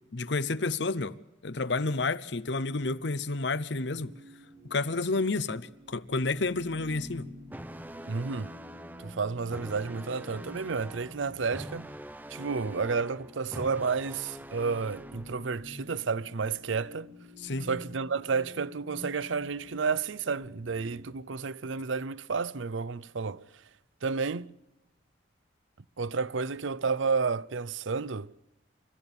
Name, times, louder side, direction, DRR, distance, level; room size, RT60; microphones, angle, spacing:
voice 1, 0.1-1.2 1.4-4.1 4.7-7.3 17.4-17.7, left 3 dB, 65° left, 0.8 m, -30 dB
sound 1, 3.4-21.0, left 1 dB, 50° right, 6.5 m, -50 dB
sound 2, 7.5-15.5, right 1 dB, 10° right, 0.7 m, -44 dB
voice 2, 8.1-8.5 9.0-11.9 12.3-17.1 17.6-23.4 24.0-24.5 26.0-28.3, right 5 dB, 85° right, 0.7 m, -31 dB
29.0 x 14.0 x 7.2 m
head